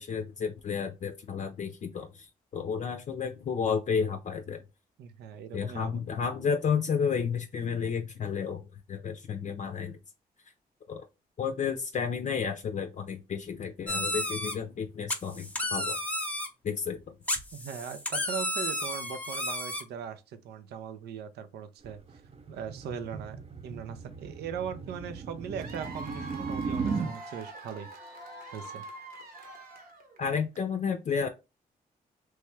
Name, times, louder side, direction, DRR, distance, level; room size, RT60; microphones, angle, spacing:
voice 1, 0.0-2.3 2.5-4.6 5.5-10.0 10.9-11.0 11.4-16.0 16.6-17.2 30.2-31.3, left 6 dB, 45° left, 0.5 m, -31 dB
voice 2, 5.0-6.0 17.5-22.0 22.5-23.4 23.6-27.9 28.5-28.8, right 7 dB, 85° right, 0.5 m, -39 dB
sound 1, 13.9-14.5 15.1-16.5 17.3-19.8, left 1 dB, 10° left, 0.8 m, -32 dB
sound 2, 21.8-27.1, right 5 dB, 40° right, 0.5 m, -36 dB
Cheering / Applause / Crowd, 25.6-30.3, right 2 dB, 65° right, 0.9 m, -44 dB
3.1 x 2.3 x 3.1 m
cardioid pair, 70°, 17 cm